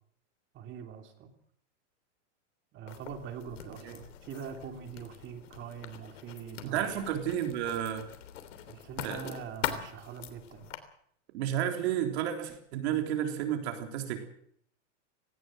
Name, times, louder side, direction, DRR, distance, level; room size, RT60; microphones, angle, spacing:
voice 1, 0.5-1.3 2.7-7.2 8.7-10.7, right 7 dB, 30° right, 6 dB, 3.3 m, -43 dB
Writing, 2.9-10.8, left 10 dB, 75° left, 3.4 m, -43 dB
voice 2, 6.6-8.1 9.0-9.3 11.3-14.2, right 10 dB, 60° right, 5 dB, 3.6 m, -32 dB
18.5 x 18.0 x 7.8 m, 0.66 s
supercardioid pair, 150°, 37 cm